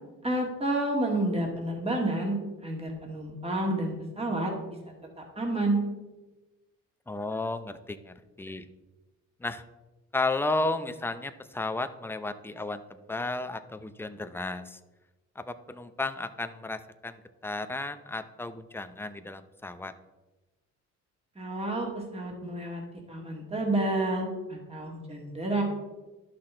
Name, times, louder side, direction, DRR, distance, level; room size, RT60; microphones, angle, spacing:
voice 1, 0.2-2.4 2.6-4.5 5.2-5.8 21.4-22.8 23.1-25.6, right 1 dB, 20° right, 0 dB, 2.2 m, -30 dB
voice 2, 7.1-8.6 9.4-9.6 10.1-14.8 15.4-19.9, left 2 dB, 5° left, 10 dB, 0.6 m, -33 dB
11.5 x 5.9 x 3.8 m, 1.1 s
cardioid pair, 90°, 30 cm